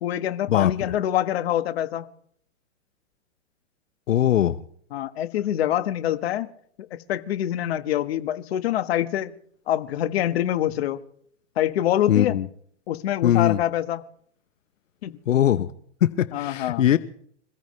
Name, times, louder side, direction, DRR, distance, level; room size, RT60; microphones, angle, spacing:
voice 1, 0.0-2.1 4.9-6.5 6.9-9.3 9.7-11.0 11.6-12.4 12.9-14.0 15.0-15.2 16.3-16.9, left 12 dB, 55° left, 10 dB, 1.4 m, -25 dB
voice 2, 4.1-4.6 12.1-12.5 13.2-13.6 15.3-15.7 16.0-17.0, left 11 dB, 90° left, 13 dB, 0.9 m, -20 dB
26.5 x 16.0 x 3.2 m, 0.63 s
hypercardioid pair, 150°, 37 cm